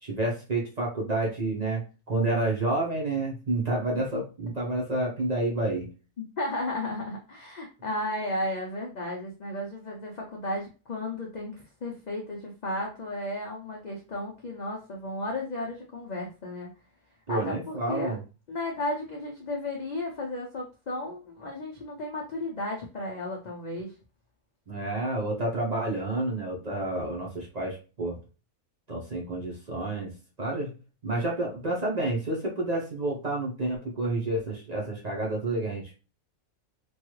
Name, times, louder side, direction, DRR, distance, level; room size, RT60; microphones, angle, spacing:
voice 1, 0.0-5.9 17.3-18.2 24.7-28.2 28.9-30.1 30.4-30.7 31.0-35.9, right 2 dB, 40° right, -2 dB, 0.6 m, -29 dB
voice 2, 6.2-16.7 17.3-18.2 18.5-23.9, left 1 dB, 80° left, -1 dB, 0.4 m, -34 dB
3.0 x 2.3 x 3.1 m, 0.33 s
omnidirectional pair, 1.5 m